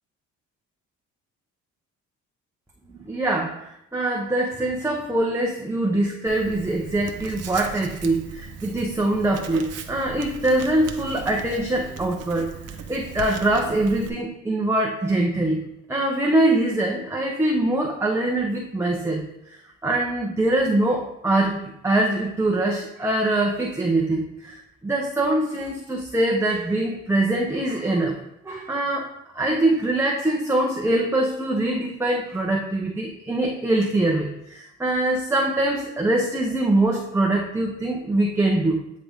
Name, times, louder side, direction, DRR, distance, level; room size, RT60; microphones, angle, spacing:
voice 1, 3.0-3.6 3.9-12.5 12.9-15.6 15.9-19.2 19.8-28.2 28.4-38.8, right 1 dB, 10° right, -2 dB, 0.9 m, -23 dB
Writing, 6.3-14.1, right 6 dB, 55° right, 0.8 m, -38 dB
8.7 x 3.8 x 3.6 m, 0.82 s
cardioid pair, 90°, 30 cm